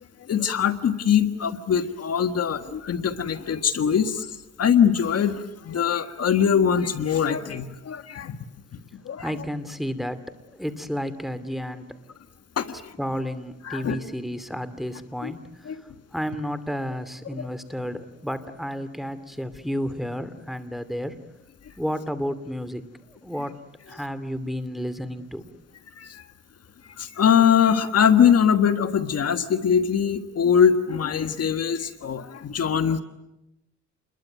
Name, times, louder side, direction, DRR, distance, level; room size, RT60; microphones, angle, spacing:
voice 1, 0.3-8.4 9.0-9.3 12.6-12.9 13.7-14.0 15.2-15.3 15.7-15.8 17.4-17.5 26.0-26.2 27.0-33.0, left 8 dB, 55° left, 9 dB, 1.6 m, -22 dB
voice 2, 9.2-10.2 10.5-12.0 13.0-21.2 21.8-23.5 23.9-25.5, equal, ahead, 12 dB, 2.6 m, -32 dB
29.0 x 22.0 x 9.3 m, 0.94 s
cardioid pair, 90°, 30 cm